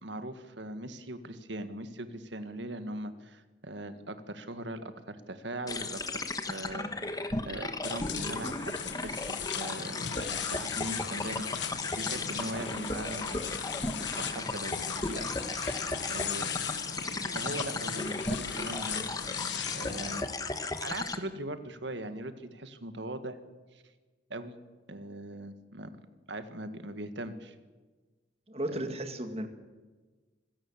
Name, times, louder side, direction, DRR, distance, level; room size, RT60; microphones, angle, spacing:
voice 1, 0.0-13.7 14.1-15.3 15.7-15.8 16.1-16.5 17.2-19.2 19.7-20.3 20.8-23.4 23.7-23.8 24.3-24.6 24.9-25.9 26.3-27.6 28.7-28.8, right 1 dB, 70° right, 10 dB, 1.8 m, -40 dB
sound 1, 5.7-21.2, left 2 dB, 20° left, 1.3 m, -36 dB
sound 2, 7.8-20.2, left 8 dB, 70° left, 1.4 m, -38 dB
voice 2, 28.5-29.5, right 1 dB, 30° right, 7 dB, 2.1 m, -34 dB
25.5 x 16.5 x 7.4 m, 1.3 s
head